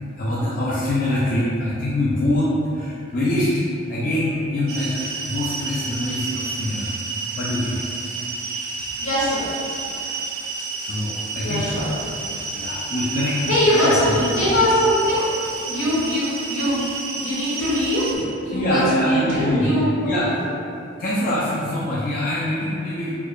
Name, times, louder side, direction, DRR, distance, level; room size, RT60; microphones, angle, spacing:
voice 1, 0.2-3.6 3.9-6.9 7.4-7.9 8.1-8.4 10.8-11.7 12.5-14.1 18.5-20.3 21.0-23.1, left 1 dB, 45° left, -8 dB, 0.4 m, -24 dB
sound 1, 4.7-18.2, right 4 dB, 90° right, 0.4 m, -30 dB
voice 2, 9.0-9.5 11.4-11.9 13.5-15.3 15.6-16.8 17.1-20.2, left 1 dB, 75° left, -10 dB, 1.3 m, -22 dB
4.5 x 2.2 x 2.4 m, 2.7 s
head